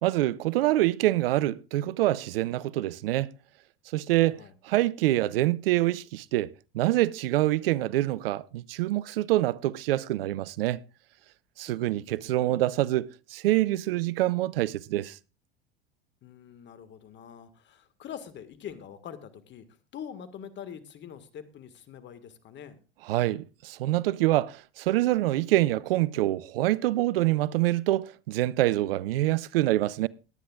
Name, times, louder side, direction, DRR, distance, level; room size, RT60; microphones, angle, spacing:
voice 1, 0.0-3.3 3.9-10.8 11.6-15.2 23.1-30.1, right 16 dB, 75° right, 0.5 m, -26 dB
voice 2, 4.2-4.5 11.7-12.4 16.2-19.6 19.9-22.8, left 8 dB, 40° left, 1.6 m, -44 dB
20.5 x 9.4 x 2.3 m
hypercardioid pair, 85°, 29 cm